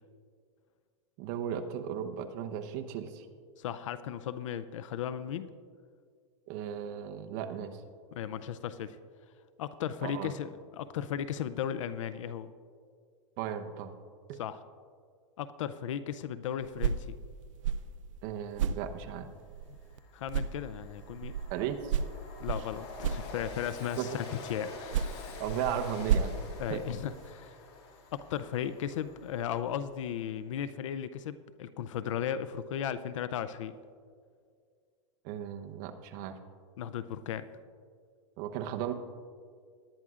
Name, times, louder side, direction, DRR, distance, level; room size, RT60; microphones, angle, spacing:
voice 1, 1.2-3.3 6.5-7.8 10.0-10.3 13.4-13.9 14.3-14.4 18.2-19.3 21.5-22.0 24.0-24.2 25.4-26.4 26.7-26.8 35.2-36.4 38.4-38.9, right 9 dB, 45° right, 7 dB, 0.9 m, -36 dB
voice 2, 3.6-5.5 8.1-9.0 9.6-12.5 14.4-14.6 15.4-17.2 20.1-21.3 22.4-25.4 26.6-27.6 28.1-33.7 36.8-37.5, left 9 dB, 80° left, 13 dB, 0.5 m, -36 dB
sound 1, 16.6-20.0 20.3-23.8 24.6-27.3, right 7 dB, 85° right, 0.5 m, -34 dB
Train, 19.1-19.2 19.6-30.0, left 3 dB, 55° left, 2.4 m, -47 dB
19.0 x 10.5 x 2.5 m, 2.1 s
supercardioid pair, 145°, 16 cm